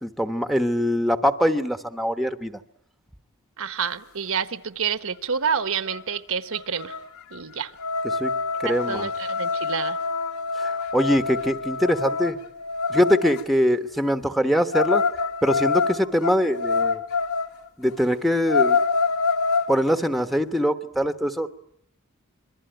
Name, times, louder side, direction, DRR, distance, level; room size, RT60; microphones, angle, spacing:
voice 1, 0.0-2.6 8.1-8.3 8.6-9.1 10.6-12.4 12.9-15.0 15.4-17.0 17.8-18.8 19.7-21.5, equal, ahead, 7 dB, 1.1 m, -23 dB
voice 2, 3.6-7.0 7.3-7.7 8.6-10.0, right 6 dB, 65° right, 11 dB, 1.1 m, -28 dB
sound 1, 5.5-5.6 5.9-6.2 6.5-13.4 14.7-17.5 17.9-18.0 18.3-19.7, left 4 dB, 70° left, 2.8 m, -26 dB
26.5 x 23.0 x 9.1 m, 0.72 s
head